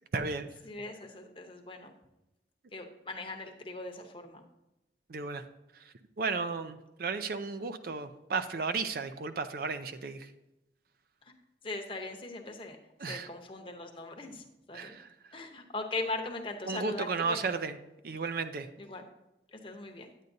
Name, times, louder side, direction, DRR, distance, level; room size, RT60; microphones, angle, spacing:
voice 1, 0.1-0.5 5.1-5.4 5.7-10.3 13.0-13.3 14.7-15.4 16.7-17.8 18.0-18.7, right 4 dB, 55° right, 10 dB, 0.4 m, -34 dB
voice 2, 0.6-1.9 2.7-4.4 11.6-12.8 13.1-15.0 15.3-17.5 18.8-19.0 19.5-20.1, left 2 dB, 30° left, 4 dB, 0.8 m, -40 dB
9.5 x 9.0 x 2.7 m, 0.94 s
head